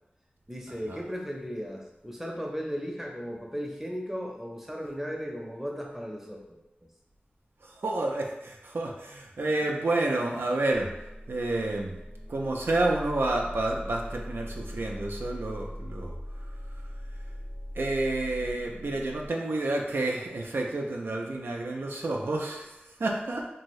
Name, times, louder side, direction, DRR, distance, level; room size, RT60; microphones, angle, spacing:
voice 1, 0.5-6.4, equal, 5° right, -1 dB, 0.6 m, -36 dB
voice 2, 7.6-10.9 11.3-11.9 12.3-16.1 17.8-22.7 23.0-23.5, right 2 dB, 80° right, 0 dB, 0.4 m, -29 dB
sound 1, 10.7-19.3, equal, 35° left, 0.6 m, -40 dB
2.7 x 2.6 x 3.0 m, 0.96 s
wide cardioid pair, 50°, 4 cm